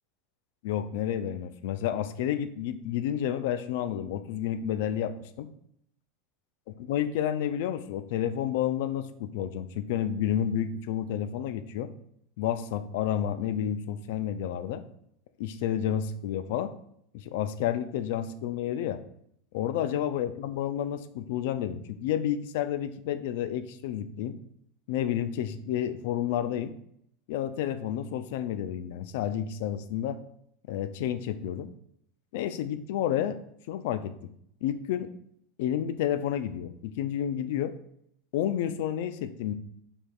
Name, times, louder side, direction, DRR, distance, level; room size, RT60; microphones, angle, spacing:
voice 1, 0.6-5.5 6.7-11.9 12.4-14.8 15.4-16.7 17.1-19.0 19.5-24.4 24.9-26.7 27.3-30.2 30.7-31.7 32.3-33.4 33.7-34.1 34.6-35.1 35.6-37.8 38.3-39.5, left 10 dB, 75° left, 12 dB, 0.4 m, -30 dB
5.2 x 4.4 x 2.3 m, 0.71 s
supercardioid pair, 115°, 0 cm